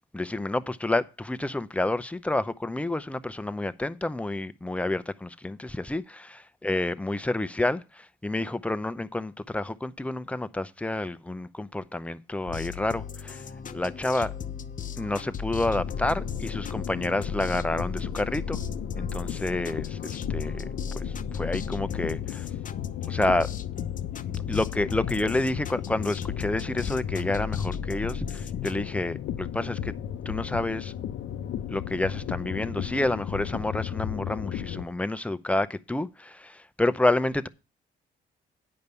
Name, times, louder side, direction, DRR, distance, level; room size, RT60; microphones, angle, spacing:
voice 1, 0.1-13.4 13.7-14.3 15.0-18.6 19.0-20.7 20.9-22.5 23.1-23.5 24.5-29.9 30.3-30.9 31.7-37.5, left 2 dB, 5° left, 0.6 m, -29 dB
sound 1, 12.5-28.8, left 6 dB, 40° left, 0.7 m, -36 dB
sound 2, 15.7-34.8, left 10 dB, 75° left, 0.7 m, -35 dB
9.6 x 5.2 x 6.8 m
cardioid pair, 90°, 20 cm